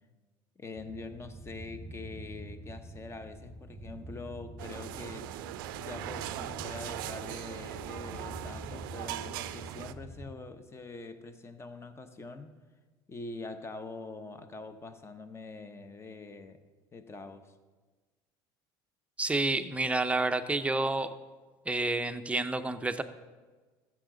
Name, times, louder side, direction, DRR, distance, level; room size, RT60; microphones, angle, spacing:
voice 1, 0.6-5.3 5.8-12.6 13.1-16.6 16.9-17.5, left 3 dB, 25° left, 10 dB, 1.0 m, -44 dB
sound 1, 0.8-10.3, right 1 dB, 5° left, 1.2 m, -46 dB
sound 2, 4.6-9.9, right 13 dB, 85° right, 0.4 m, -40 dB
voice 2, 19.2-21.1 21.7-23.0, right 2 dB, 10° right, 9 dB, 0.6 m, -29 dB
14.0 x 7.5 x 3.9 m, 1.3 s
supercardioid pair, 90°, 11 cm